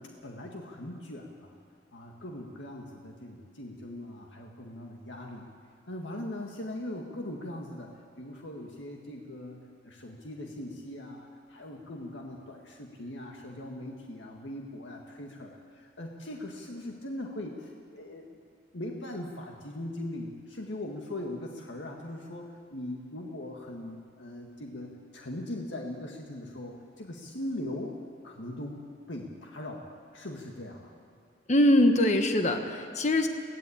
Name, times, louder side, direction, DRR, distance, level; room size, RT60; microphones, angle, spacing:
voice 1, 0.0-1.5 1.9-5.5 5.9-7.9 8.2-18.4 18.7-27.9 28.2-28.8 29.1-30.9, left 1 dB, 80° left, 1 dB, 1.9 m, -40 dB
voice 2, 31.5-33.3, left 1 dB, 40° left, 5 dB, 1.3 m, -23 dB
22.5 x 16.5 x 8.7 m, 2.2 s
head